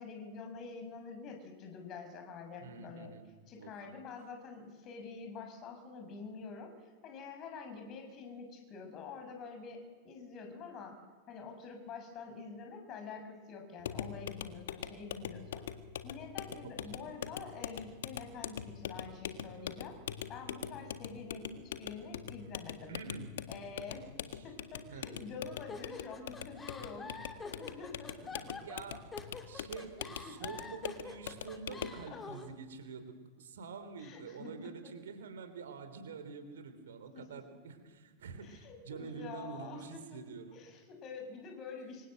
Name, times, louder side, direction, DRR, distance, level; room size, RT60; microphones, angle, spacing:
voice 1, 0.0-3.1 3.5-6.7 7.0-11.0 11.3-15.6 16.0-19.9 20.3-23.0 23.5-24.1 24.4-27.1 27.4-28.5 29.9-30.5 31.7-31.8 32.1-32.4 34.0-34.9 37.1-37.6 38.4-40.2 40.5-42.1, left 4 dB, 35° left, 4 dB, 6.7 m, -47 dB
voice 2, 2.6-3.3 3.6-3.7 16.6-17.0 22.9-23.4 24.3-24.4 24.9-25.3 28.3-29.1 29.4-40.6, right 5 dB, 65° right, 9 dB, 3.7 m, -47 dB
sound 1, 13.8-32.0, left 9 dB, 60° left, 1.7 m, -43 dB
sound 2, 25.7-32.5, left 4 dB, 15° left, 2.9 m, -47 dB
26.5 x 24.5 x 7.9 m, 1.5 s
figure-of-eight pair, 90°, 0 cm